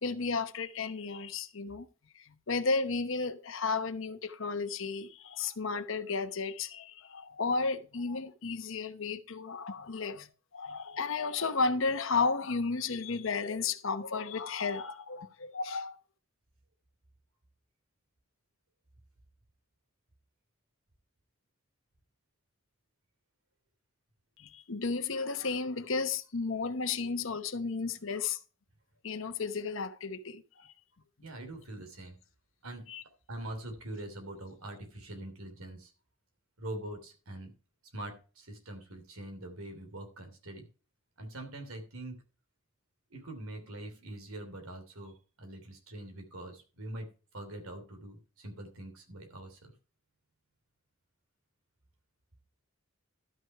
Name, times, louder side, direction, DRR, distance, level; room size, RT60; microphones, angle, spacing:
voice 1, 0.0-1.9 2.1-10.3 10.5-16.0 24.4-28.4 29.0-30.7 32.9-33.0, left 4 dB, 60° left, 0.9 m, -33 dB
voice 2, 31.2-32.2 32.6-32.9 33.3-35.9 36.6-37.5 37.9-40.7 41.2-42.2 43.1-47.1 47.3-49.7, right 1 dB, 80° right, 3.0 m, -43 dB
12.5 x 6.2 x 4.6 m
head